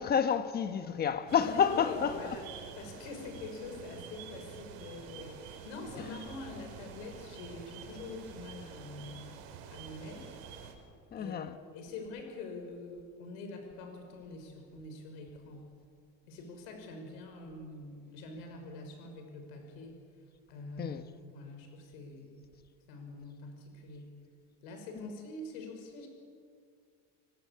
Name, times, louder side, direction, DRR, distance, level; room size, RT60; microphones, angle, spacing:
voice 1, 0.0-2.2 11.1-11.6 20.8-21.0 25.0-25.1, left 7 dB, 25° left, 1.3 m, -29 dB
sound 1, 1.3-10.7, right 7 dB, 75° right, 5.5 m, -48 dB
voice 2, 1.4-9.4 9.7-10.3 11.2-15.7 16.3-20.2 20.5-22.4 22.9-24.1 24.6-26.1, left 3 dB, 75° left, 6.1 m, -45 dB
28.0 x 24.0 x 8.5 m
cardioid pair, 170°, 40 cm